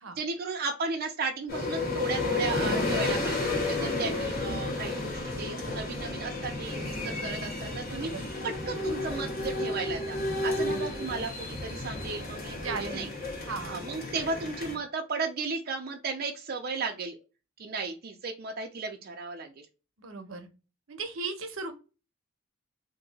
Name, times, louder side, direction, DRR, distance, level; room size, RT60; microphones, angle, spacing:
voice 1, 0.0-13.1 13.6-17.2 17.6-19.7, right 4 dB, 45° right, 1 dB, 0.5 m, -35 dB
sound 1, 1.5-14.8, left 2 dB, 45° left, 1.4 m, -32 dB
voice 2, 7.9-8.3 10.6-10.8 12.6-13.1 13.5-13.8 20.0-20.5 20.9-21.7, right 4 dB, 75° right, 7 dB, 0.7 m, -37 dB
2.8 x 2.6 x 3.9 m, 0.31 s
head